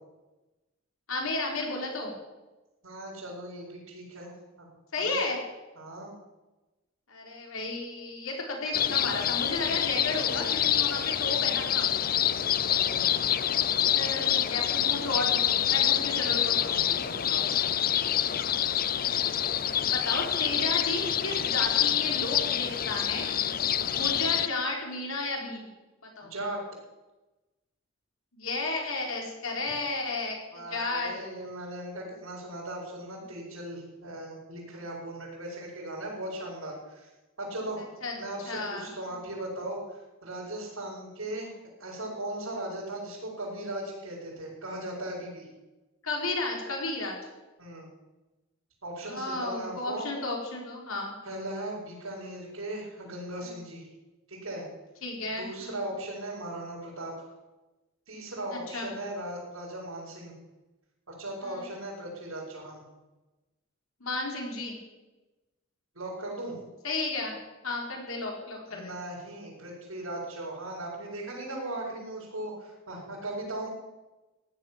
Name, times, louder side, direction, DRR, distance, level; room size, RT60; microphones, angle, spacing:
voice 1, 1.1-2.1 4.9-5.4 7.1-11.9 13.9-16.6 19.9-23.3 23.9-25.7 26.2-26.3 28.3-31.1 38.0-38.2 38.5-38.9 46.0-47.2 49.1-51.2 55.0-55.7 58.5-58.9 61.4-61.7 64.0-64.8 66.8-67.4 67.6-68.9, left 2 dB, 90° left, 0 dB, 4.6 m, -33 dB
voice 2, 2.8-4.7 5.0-5.3 5.7-6.1 12.6-13.3 16.6-17.7 23.9-24.2 26.2-26.6 30.5-37.1 37.4-37.8 38.2-41.5 41.8-45.5 47.6-47.9 48.8-50.1 51.2-53.9 54.3-54.7 55.4-57.3 58.1-60.4 61.1-62.8 65.9-66.6 68.7-73.7, right 1 dB, 85° right, -8 dB, 5.9 m, -38 dB
sound 1, 8.7-24.5, left 10 dB, 45° left, 0.6 m, -27 dB
15.5 x 11.5 x 7.4 m, 1.1 s
head